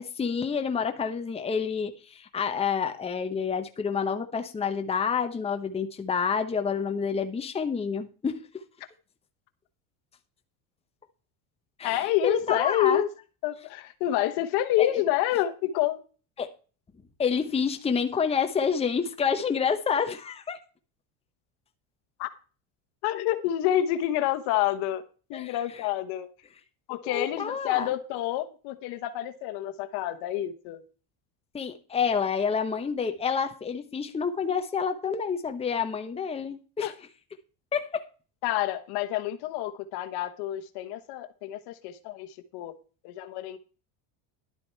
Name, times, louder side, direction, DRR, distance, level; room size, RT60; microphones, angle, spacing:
voice 1, 0.0-8.4 11.8-12.0 12.2-13.0 14.8-14.9 16.4-16.5 17.2-20.6 25.3-25.6 27.0-27.9 31.5-36.9 37.7-38.1, left 6 dB, 15° left, 0.9 m, -28 dB
voice 2, 11.8-13.1 13.4-16.0 22.2-22.3 23.0-25.0 25.3-26.3 26.9-30.8 36.8-36.9 38.4-42.7 43.0-43.6, left 13 dB, 65° left, 1.2 m, -28 dB
11.5 x 7.6 x 4.5 m
supercardioid pair, 120°, 42 cm